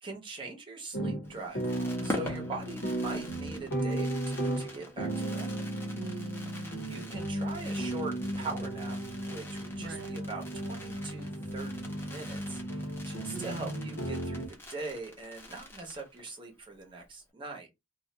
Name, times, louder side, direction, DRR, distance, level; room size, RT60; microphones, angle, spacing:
voice 1, 0.0-1.6 2.0-5.6 6.8-9.0 9.2-17.7, right 3 dB, 30° right, 0.8 m, -42 dB
sound 1, 0.9-14.5, right 1 dB, 70° left, 0.8 m, -35 dB
Fireworks, 1.2-16.4 16.7-16.8 17.0-17.3, left 1 dB, 15° left, 0.7 m, -45 dB
voice 2, 2.0-2.5 6.0-7.0 9.8-10.2 13.3-14.0, right 5 dB, 75° right, 0.4 m, -44 dB
2.4 x 2.1 x 3.7 m
head